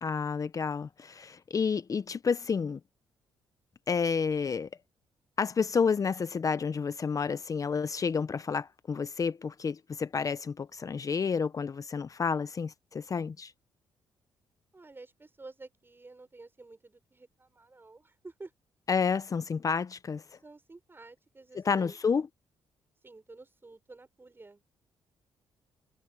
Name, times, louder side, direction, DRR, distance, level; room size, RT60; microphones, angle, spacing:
voice 1, 0.0-2.8 3.9-4.7 5.4-13.5 18.9-20.2 21.6-22.3, left 5 dB, 40° left, 0.7 m, -30 dB
voice 2, 14.7-18.5 20.4-22.0 23.0-24.6, right 3 dB, 25° right, 6.6 m, -51 dB
supercardioid pair, 65°, 9 cm